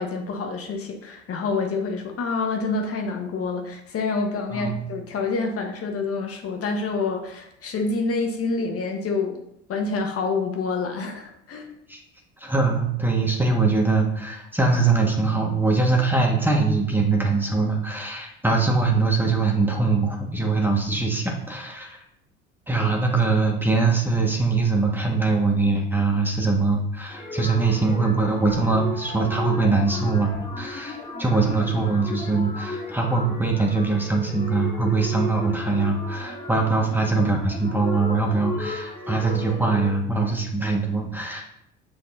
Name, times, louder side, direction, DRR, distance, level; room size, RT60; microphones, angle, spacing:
voice 1, 0.0-9.4 9.7-11.7, left 4 dB, 45° left, 3 dB, 1.2 m, -27 dB
voice 2, 4.5-4.8 11.9-12.0 12.4-22.0 22.7-41.4, right 3 dB, 5° right, 0 dB, 1.6 m, -22 dB
sound 1, 27.1-39.9, left 2 dB, 15° left, 2.0 m, -35 dB
6.4 x 6.2 x 2.7 m, 0.76 s
hypercardioid pair, 65°, 33 cm